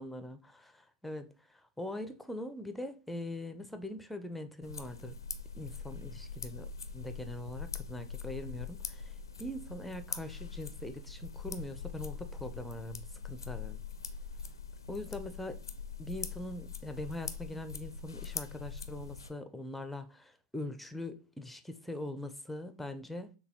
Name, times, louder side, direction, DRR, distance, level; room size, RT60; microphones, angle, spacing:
voice 1, 0.0-5.2 5.5-13.8 14.9-15.6 16.0-23.3, left 1 dB, 5° left, 0.6 m, -42 dB
sound 1, 4.6-19.3, left 5 dB, 85° left, 0.5 m, -43 dB
6.7 x 2.3 x 2.9 m
figure-of-eight pair, 90°, 2 cm